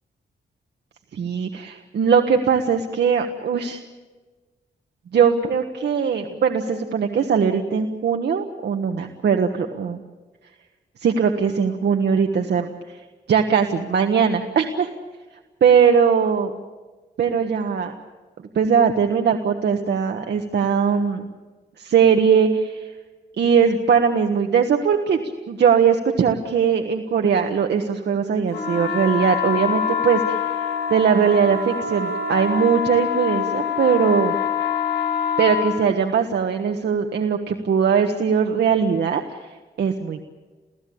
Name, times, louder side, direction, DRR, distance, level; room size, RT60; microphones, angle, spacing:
voice 1, 1.1-3.8 5.1-10.0 11.0-12.7 13.3-14.9 15.6-16.5 17.2-17.9 18.5-21.2 21.8-22.9 23.4-30.4 30.9-34.4 35.4-39.2 39.8-40.3, right 6 dB, 80° right, 4 dB, 1.4 m, -20 dB
sound 1, 28.5-35.7, left 7 dB, 85° left, 6.8 m, -25 dB
29.5 x 16.0 x 8.6 m, 1.3 s
wide cardioid pair, 105°, 17 cm